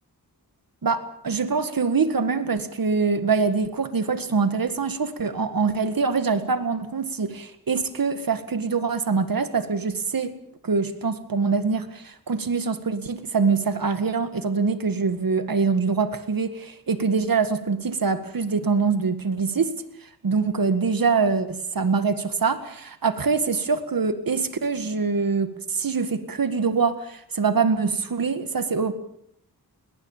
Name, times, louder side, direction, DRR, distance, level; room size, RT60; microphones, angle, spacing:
voice 1, 0.8-10.4 10.6-19.7 20.2-28.9, right 5 dB, 60° right, 1.9 m, -24 dB
21.5 x 18.5 x 7.4 m
wide cardioid pair, 75°, 38 cm